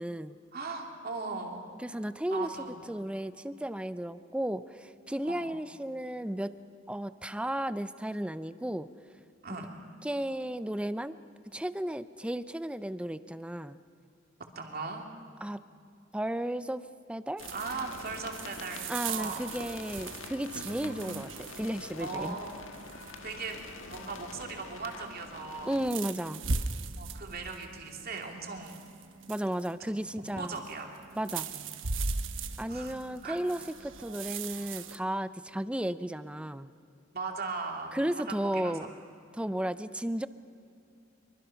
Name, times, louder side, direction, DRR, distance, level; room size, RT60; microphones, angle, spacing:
voice 1, 0.0-0.4 1.8-2.5 2.9-6.5 6.9-8.9 10.0-11.2 11.5-13.8 15.4-15.6 16.1-16.8 17.1-17.4 18.9-22.4 25.7-26.4 29.3-30.6 31.2-31.5 32.6-36.7 37.9-38.9 39.3-40.3, right 1 dB, 5° right, 13 dB, 0.5 m, -34 dB
voice 2, 0.5-1.6 2.3-2.9 5.2-5.6 9.4-9.8 14.5-15.0 17.5-19.4 22.0-22.7 23.2-25.8 27.0-28.8 29.9-30.0 30.4-30.9 31.4-31.6 32.7-33.4 37.1-38.0 38.4-38.9, right 4 dB, 50° right, 2 dB, 2.7 m, -39 dB
sound 1, 17.4-25.9, left 3 dB, 80° left, 1.6 m, -46 dB
sound 2, 17.4-35.0, right 4 dB, 75° right, 1.1 m, -40 dB
24.5 x 23.5 x 5.8 m, 2.5 s
head